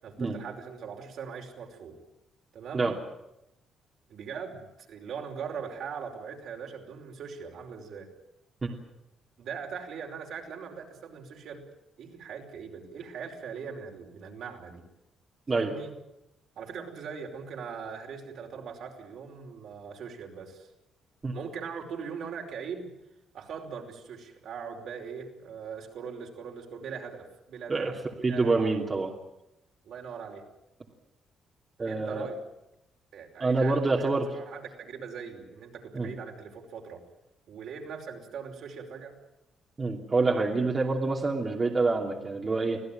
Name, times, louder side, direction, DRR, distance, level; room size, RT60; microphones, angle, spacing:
voice 1, 0.0-2.0 2.5-2.9 4.1-8.1 9.4-11.6 12.0-14.8 15.5-15.9 16.6-20.7 21.3-22.9 23.3-28.7 29.8-30.4 31.8-32.4 33.1-37.0 37.5-39.1, right 6 dB, 70° right, 1 dB, 5.2 m, -40 dB
voice 2, 28.2-29.1 31.8-32.3 33.4-34.3 35.9-36.1 39.8-42.8, right 3 dB, 30° right, 0 dB, 3.0 m, -26 dB
25.5 x 16.0 x 9.2 m, 0.89 s
cardioid pair, 90°, 0 cm